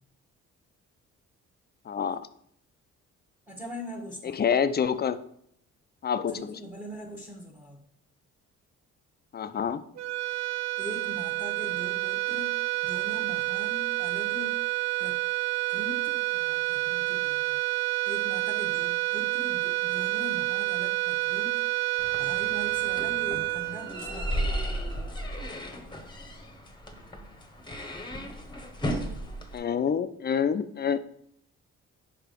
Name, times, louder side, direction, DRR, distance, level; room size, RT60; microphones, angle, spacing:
voice 1, 1.9-2.2 4.3-5.2 6.0-6.5 9.3-9.8 29.5-31.0, left 7 dB, 35° left, 12 dB, 0.5 m, -27 dB
voice 2, 3.5-4.4 6.3-7.8 10.8-14.6 15.0-15.2 15.7-17.6 18.1-21.6 22.2-24.6, equal, 5° right, 0 dB, 1.3 m, -41 dB
sound 1, 10.0-24.5, right 21 dB, 65° right, 0.4 m, -29 dB
sound 2, 22.0-29.6, equal, 15° left, 1.1 m, -35 dB
5.5 x 4.8 x 5.1 m, 0.68 s
cardioid pair, 90°, 30 cm